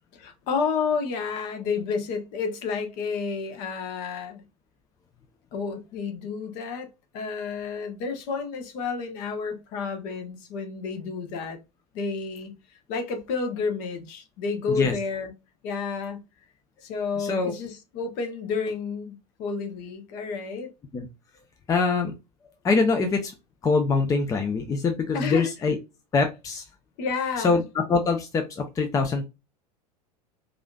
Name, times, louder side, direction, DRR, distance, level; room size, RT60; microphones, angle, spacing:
voice 1, 0.1-4.4 5.5-6.9 7.1-11.6 11.9-15.3 15.6-16.2 16.8-20.7 25.1-25.5 27.0-27.6, left 5 dB, 45° left, 1.0 m, -30 dB
voice 2, 17.2-17.5 20.9-21.1 21.7-22.1 22.6-23.3 23.6-25.8 26.1-26.7 27.4-29.2, left 4 dB, 15° left, 0.5 m, -24 dB
4.8 x 2.6 x 2.3 m
figure-of-eight pair, 85°, 20 cm